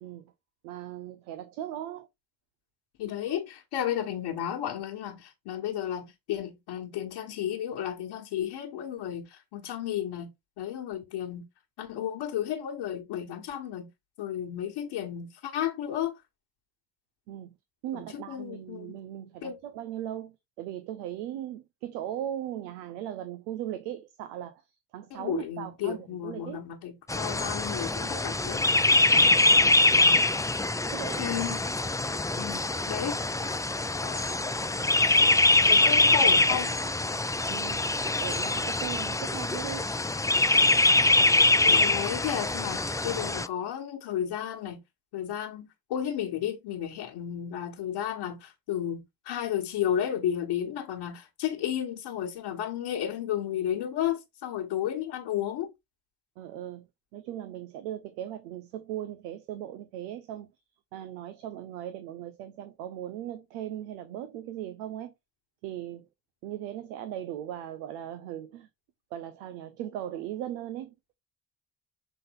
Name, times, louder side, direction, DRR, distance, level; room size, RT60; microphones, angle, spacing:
voice 1, 0.0-0.3 0.6-2.1 17.3-17.5 17.8-24.6 24.9-26.6 29.6-30.2 30.9-31.2 37.5-39.9 56.4-56.9 57.1-60.5 60.9-65.1 65.6-66.1 66.4-68.7 69.1-70.9, right 11 dB, 90° right, 0.7 m, -38 dB
voice 2, 3.0-10.3 10.6-11.5 11.8-13.9 14.2-16.1 17.9-19.0 19.4-19.6 25.1-28.6 31.2-31.6 32.4-32.6 32.9-33.1 33.4-33.6 33.9-34.4 35.5-36.7 41.6-44.8 45.1-55.7, left 10 dB, 80° left, 1.5 m, -33 dB
sound 1, 27.1-43.5, left 2 dB, 10° left, 0.5 m, -24 dB
7.6 x 3.9 x 3.7 m
hypercardioid pair, 40°, 45 cm